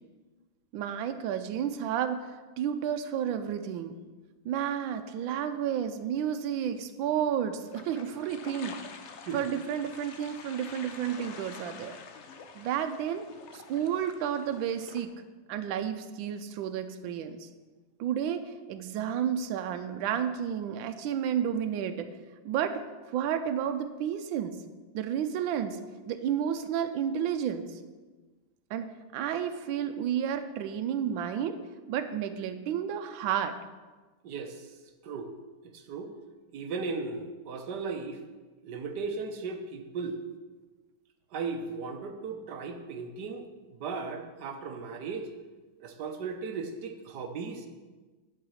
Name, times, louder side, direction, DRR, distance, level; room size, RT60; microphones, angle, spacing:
voice 1, 0.7-2.3 2.6-4.0 4.4-8.8 9.3-12.0 12.5-13.3 13.5-15.1 15.5-17.5 18.0-22.1 22.4-24.6 24.9-25.8 26.0-27.8 28.7-31.6 31.9-33.6, right 9 dB, 80° right, 8 dB, 1.4 m, -31 dB
sound 1, 7.6-15.0, left 5 dB, 90° left, 0.6 m, -47 dB
voice 2, 34.2-34.7 35.0-35.4 35.6-36.1 36.5-38.2 38.6-40.2 41.3-45.3 45.8-47.7, right 4 dB, 65° right, 6 dB, 1.3 m, -36 dB
10.5 x 5.0 x 6.3 m, 1.3 s
omnidirectional pair, 2.1 m